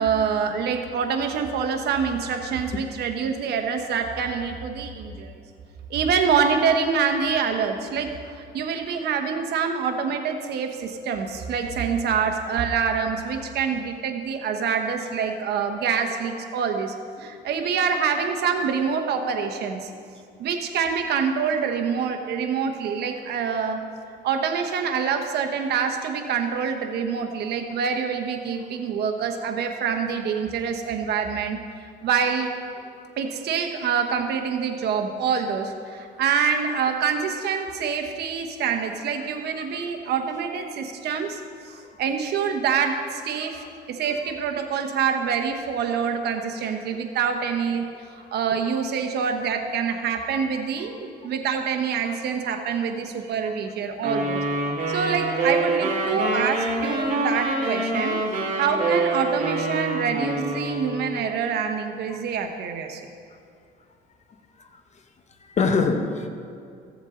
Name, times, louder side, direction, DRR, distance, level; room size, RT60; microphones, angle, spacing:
voice 1, 0.0-5.3 5.9-8.2 8.5-16.9 17.2-19.9 20.4-23.8 24.2-31.6 32.0-32.5 33.2-41.4 42.0-47.9 48.3-54.4 54.9-58.2 58.6-63.0, right 6 dB, 70° right, 4 dB, 1.1 m, -26 dB
sound 1, 54.0-61.2, right 2 dB, 50° right, 2.4 m, -26 dB
voice 2, 65.4-66.3, left 4 dB, 40° left, 6 dB, 1.0 m, -27 dB
15.5 x 7.2 x 3.8 m, 2.4 s
cardioid pair, 115°, 17 cm